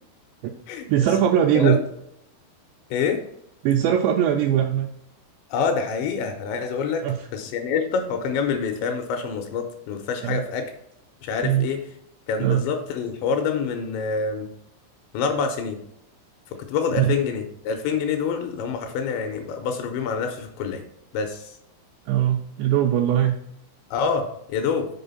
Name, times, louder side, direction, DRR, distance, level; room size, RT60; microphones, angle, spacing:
voice 1, 0.9-1.8 3.6-4.9 7.0-7.3 10.2-10.4 11.4-11.7 12.4-12.6 17.0-17.1 22.1-23.4, right 10 dB, 85° right, 3 dB, 2.5 m, -20 dB
voice 2, 2.9-3.2 5.5-7.1 7.3-10.7 11.2-11.8 12.3-14.5 15.1-15.8 16.5-20.8 21.1-21.6 23.9-24.9, left 5 dB, 80° left, 5 dB, 2.8 m, -26 dB
6.9 x 4.4 x 5.4 m, 0.74 s
omnidirectional pair, 5.6 m